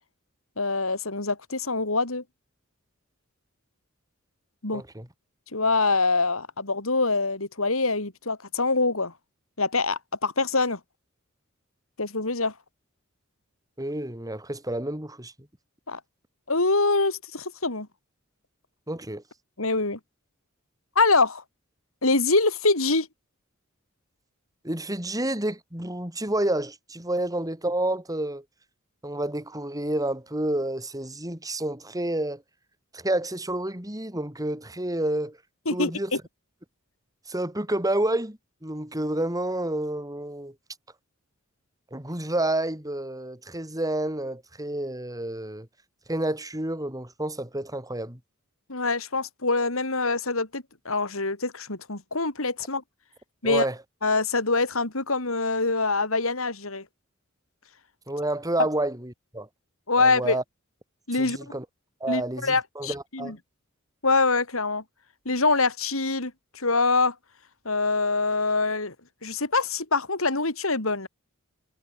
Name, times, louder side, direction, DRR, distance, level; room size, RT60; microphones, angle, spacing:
voice 1, 0.6-2.2 4.6-4.8 5.5-9.1 9.6-10.8 12.0-12.5 15.9-16.0 16.5-17.9 19.6-20.0 21.0-21.4 22.0-23.1 35.7-35.9 48.7-52.8 53.4-53.6 54.0-56.8 59.9-60.4 61.1-61.5 62.1-63.3 64.0-64.8 65.3-67.1 67.7-68.9 69.2-71.1, left 3 dB, 80° left, 4.2 m, -24 dB
voice 2, 4.7-5.1 13.8-15.5 18.9-19.2 24.6-28.4 29.0-32.4 32.9-35.4 35.7-36.1 37.3-40.6 41.9-45.7 46.1-48.2 53.4-53.8 58.1-59.5 60.0-60.4 61.1-61.7 62.0-63.4, right 1 dB, 15° right, 7.1 m, -29 dB
head